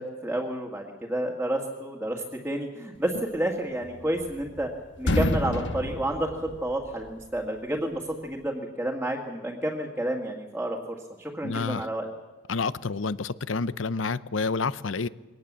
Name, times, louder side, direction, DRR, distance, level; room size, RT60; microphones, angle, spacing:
voice 1, 0.0-4.7 5.0-12.1, right 1 dB, 5° right, -2 dB, 2.0 m, -30 dB
sound 1, 3.8-4.7 5.0-7.1, left 1 dB, 65° left, 1.3 m, -28 dB
voice 2, 11.4-11.9 12.5-15.1, left 4 dB, 80° left, 17 dB, 0.7 m, -29 dB
23.0 x 18.5 x 7.5 m, 1.2 s
head